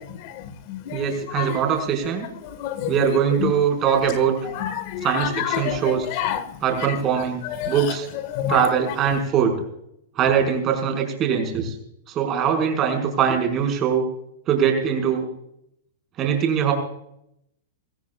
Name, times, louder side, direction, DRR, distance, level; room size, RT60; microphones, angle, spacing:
voice 1, 0.2-1.1 1.3-1.6 2.4-3.0 3.4-3.5 4.5-5.8 6.1-6.9 7.4-7.9 8.3-8.6, left 9 dB, 45° left, 12 dB, 1.8 m, -28 dB
voice 2, 0.9-2.3 2.9-4.4 5.0-6.1 6.6-8.1 8.5-9.6 10.2-11.7 12.1-14.1 14.5-15.3 16.2-16.7, right 7 dB, 25° right, 3 dB, 5.4 m, -22 dB
23.5 x 15.5 x 2.5 m, 0.75 s
hypercardioid pair, 150°, 0 cm